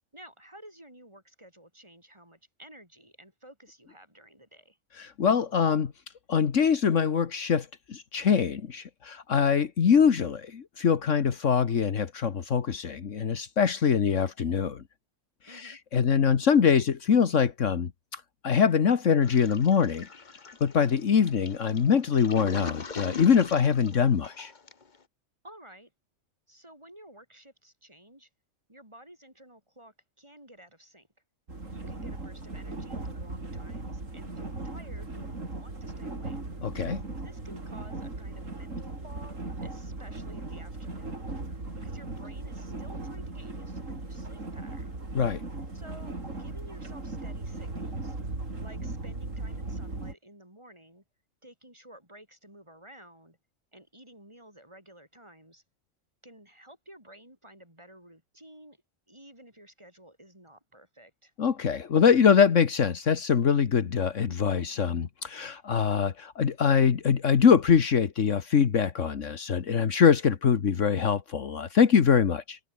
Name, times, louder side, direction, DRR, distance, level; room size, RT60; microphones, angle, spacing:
voice 1, 0.1-4.8 15.5-15.8 25.4-25.9 26.5-28.3 28.7-31.1 31.7-36.4 37.2-45.0 45.7-48.2 48.6-51.0 51.4-53.4 53.7-55.6 56.2-58.8 59.1-61.3, right 1 dB, 20° right, 7.7 m, -52 dB
voice 2, 5.0-5.9 6.3-14.8 15.5-20.1 20.6-24.5 36.6-37.0 45.1-45.4 61.4-72.6, left 7 dB, 75° left, 1.7 m, -23 dB
Toilet flush, 19.2-25.0, left 4 dB, 35° left, 1.4 m, -42 dB
sound 1, 31.5-50.1, right 2 dB, 90° right, 4.8 m, -38 dB
omnidirectional pair, 1.3 m